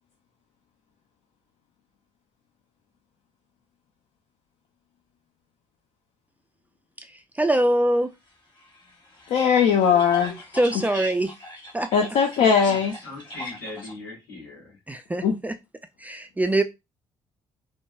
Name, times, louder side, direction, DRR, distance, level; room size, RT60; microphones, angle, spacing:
voice 1, 7.0-8.1 9.9-10.0 10.5-11.3 11.7-11.9 14.9-15.6 16.0-16.6, right 1 dB, 10° right, 0.3 m, -24 dB
sound 1, 8.6-13.9, left 1 dB, 30° left, 1.2 m, -40 dB
voice 2, 9.3-10.4 11.9-12.9 15.2-15.3, left 7 dB, 50° left, 0.5 m, -19 dB
voice 3, 12.6-14.8, left 2 dB, 75° left, 2.1 m, -39 dB
4.4 x 2.2 x 2.3 m
figure-of-eight pair, 45°, 15 cm